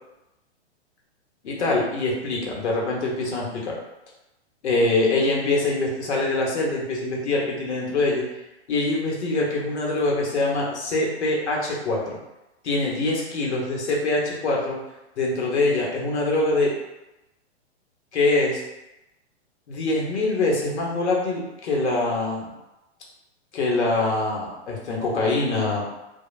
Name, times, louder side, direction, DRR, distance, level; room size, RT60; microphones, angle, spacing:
voice 1, 1.4-3.8 4.6-8.2 8.7-12.2 12.6-14.8 15.2-16.7 18.1-18.6 19.7-22.5 23.5-25.8, left 2 dB, 75° left, -2 dB, 1.0 m, -24 dB
3.1 x 2.3 x 2.3 m, 0.97 s
hypercardioid pair, 120°, 34 cm